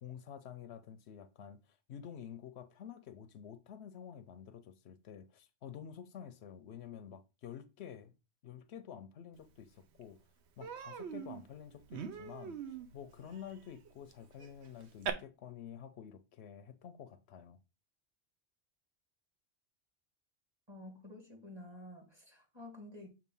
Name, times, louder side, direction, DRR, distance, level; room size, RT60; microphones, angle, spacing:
voice 1, 0.0-8.2 8.4-10.2 10.6-17.6, left 8 dB, 75° left, 0.8 m, -50 dB
Human voice, 9.6-9.7 10.0-10.2 10.6-15.1, right 8 dB, 75° right, 1.0 m, -44 dB
voice 2, 20.7-23.1, left 1 dB, 25° right, 1.8 m, -50 dB
6.9 x 2.6 x 5.3 m
omnidirectional pair, 1.1 m